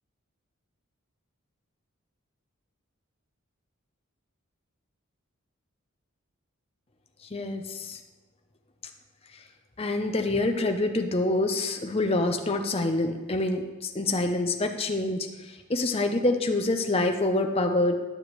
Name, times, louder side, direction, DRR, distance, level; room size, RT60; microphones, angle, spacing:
voice 1, 7.3-8.0 9.8-18.0, left 2 dB, 25° left, 5 dB, 0.6 m, -26 dB
11.0 x 7.0 x 3.1 m, 1.3 s
head